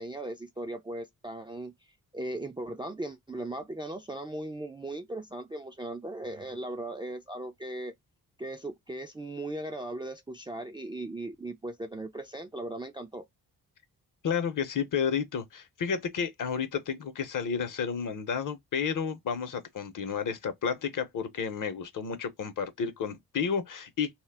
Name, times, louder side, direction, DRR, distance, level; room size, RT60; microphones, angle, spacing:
voice 1, 0.0-1.7 2.1-7.9 8.4-13.3, right 1 dB, 15° right, 0.3 m, -38 dB
voice 2, 14.2-24.1, left 6 dB, 55° left, 0.7 m, -31 dB
2.2 x 2.0 x 3.3 m
supercardioid pair, 50°, 39 cm